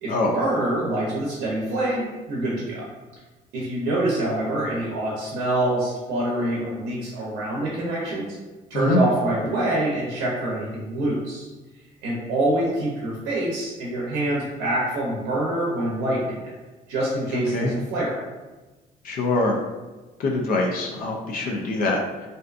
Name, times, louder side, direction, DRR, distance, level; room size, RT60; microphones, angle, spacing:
voice 1, 0.0-2.8 3.5-8.4 8.7-11.5 12.0-16.5 16.9-18.2, right 1 dB, 80° right, -4 dB, 0.6 m, -25 dB
voice 2, 17.3-17.7 19.0-19.6 20.2-22.3, left 2 dB, 60° left, 1 dB, 0.4 m, -24 dB
2.6 x 2.2 x 2.4 m, 1.2 s
cardioid pair, 110°, 17 cm